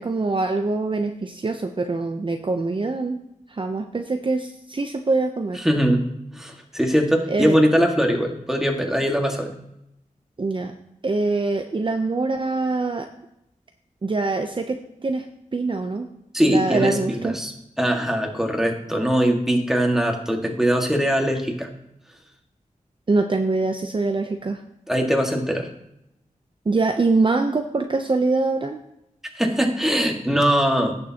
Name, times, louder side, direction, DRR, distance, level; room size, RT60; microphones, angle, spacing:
voice 1, 0.0-3.2 3.5-5.6 7.3-7.6 10.4-10.7 11.0-13.1 14.0-15.3 15.5-16.1 16.5-17.3 23.1-24.6 26.7-28.8, right 3 dB, 35° right, 5 dB, 0.6 m, -24 dB
voice 2, 5.6-6.0 6.3-9.5 16.3-17.5 17.8-21.7 24.9-25.7 29.4-31.0, equal, 5° right, 1 dB, 1.7 m, -21 dB
17.0 x 6.8 x 2.9 m, 0.82 s
wide cardioid pair, 85°, 14 cm